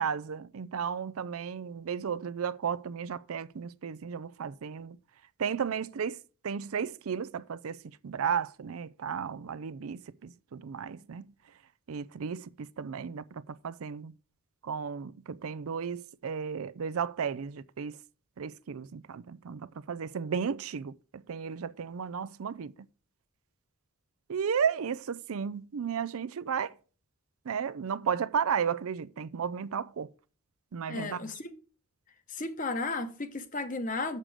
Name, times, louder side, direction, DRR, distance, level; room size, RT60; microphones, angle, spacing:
voice 1, 0.0-5.0 5.4-11.3 11.9-14.1 14.6-18.0 18.4-22.9 24.3-26.7 27.4-30.1 30.7-31.2, right 7 dB, 80° right, 0.5 m, -34 dB
voice 2, 30.9-31.5 32.3-34.2, left 3 dB, 35° left, 1.1 m, -34 dB
7.5 x 6.7 x 4.9 m
head